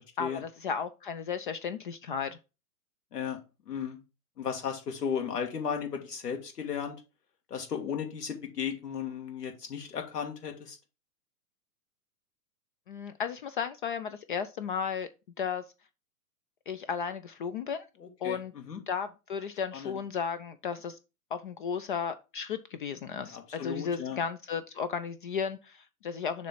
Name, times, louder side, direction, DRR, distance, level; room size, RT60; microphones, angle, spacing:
voice 1, 0.2-2.4 12.9-15.1 15.4-15.6 16.7-17.9 18.2-18.5 18.9-21.0 21.3-26.5, left 6 dB, 35° left, 0.4 m, -34 dB
voice 2, 3.7-4.0 4.4-7.0 7.5-10.8 18.0-18.8 19.7-20.0 23.2-24.2, left 7 dB, 75° left, 1.8 m, -35 dB
6.7 x 3.2 x 5.7 m
hypercardioid pair, 115°, 47 cm